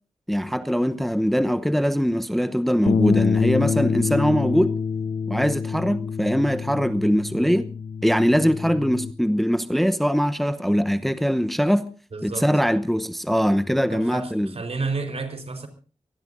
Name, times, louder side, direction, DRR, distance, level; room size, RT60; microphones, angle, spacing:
voice 1, 0.3-4.8 5.3-7.7 8.0-11.9 12.2-14.5, equal, ahead, 0.9 m, -22 dB
sound 1, 2.9-9.1, left 6 dB, 85° left, 1.0 m, -26 dB
voice 2, 12.1-12.5 13.9-15.7, right 3 dB, 60° right, 4.3 m, -31 dB
25.0 x 19.0 x 2.6 m
wide cardioid pair, 100°, 12 cm